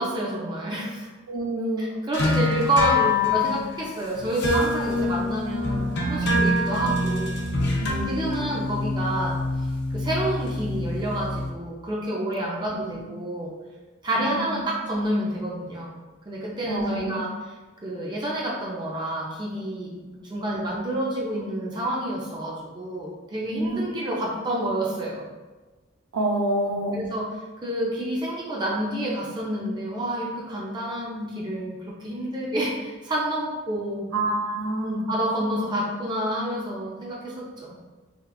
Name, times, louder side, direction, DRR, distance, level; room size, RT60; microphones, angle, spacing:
voice 1, 0.0-1.1 1.8-7.4 8.1-9.4 9.9-13.5 14.0-16.0 16.3-17.3 17.8-25.2 26.9-27.3 27.6-34.0 34.8-37.8, right 1 dB, 20° right, -4 dB, 0.4 m, -29 dB
voice 2, 1.3-1.9 2.2-2.5 6.3-6.6 7.8-8.6 12.5-12.6 12.9-13.1 14.2-14.6 16.7-17.2 23.5-23.9 26.1-27.0 34.1-35.1, right 1 dB, 80° right, 1 dB, 0.5 m, -28 dB
sound 1, 2.1-11.5, left 2 dB, 50° left, 0.5 m, -26 dB
3.5 x 2.4 x 2.3 m, 1.3 s
head